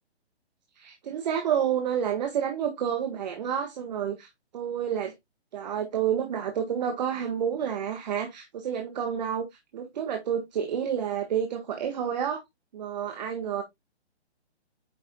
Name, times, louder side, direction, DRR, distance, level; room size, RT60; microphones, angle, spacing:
voice 1, 0.8-5.1 5.5-9.5 9.7-12.4 12.7-13.6, right 8 dB, 40° right, 1.6 m, -29 dB
9.2 x 6.0 x 2.2 m
hypercardioid pair, 160°, 34 cm